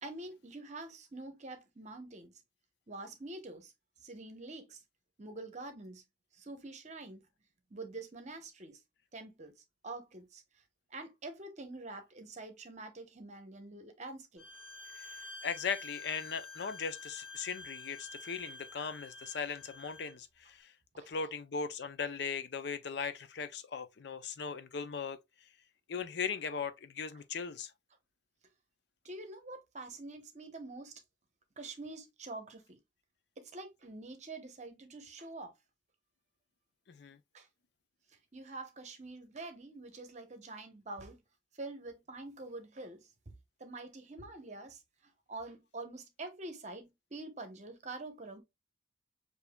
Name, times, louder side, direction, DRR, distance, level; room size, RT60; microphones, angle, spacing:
voice 1, 0.0-2.3 2.9-3.7 4.0-4.8 5.2-6.0 6.4-7.2 7.7-8.8 9.1-9.5 9.8-10.4 10.9-14.4 20.9-21.1 29.0-30.9 31.6-32.8 33.4-35.5 37.3-37.5 38.3-41.2 41.6-43.1 43.6-44.8 45.3-48.4, right 2 dB, 40° right, 0.9 m, -46 dB
Bowed string instrument, 14.4-20.1, left 3 dB, 5° left, 1.3 m, -49 dB
voice 2, 14.9-20.7 21.1-25.2 25.9-27.7 36.9-37.2, left 6 dB, 60° left, 0.5 m, -38 dB
6.8 x 2.7 x 2.2 m
head